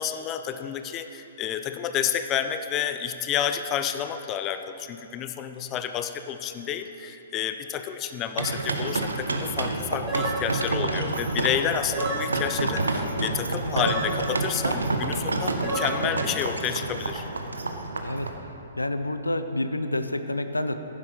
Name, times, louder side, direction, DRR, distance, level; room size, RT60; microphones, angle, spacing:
voice 1, 0.0-17.3, left 9 dB, 25° left, 9 dB, 0.5 m, -30 dB
sound 1, 8.4-8.6 10.1-10.4 11.9-12.3 13.8-14.1 15.6-15.9, right 2 dB, 10° right, 3.0 m, -30 dB
sound 2, 8.4-18.3, right 2 dB, 70° right, 1.1 m, -29 dB
voice 2, 18.8-20.7, left 1 dB, 80° left, 9 dB, 0.7 m, -28 dB
15.0 x 11.0 x 4.0 m, 2.9 s
figure-of-eight pair, 120°, 0 cm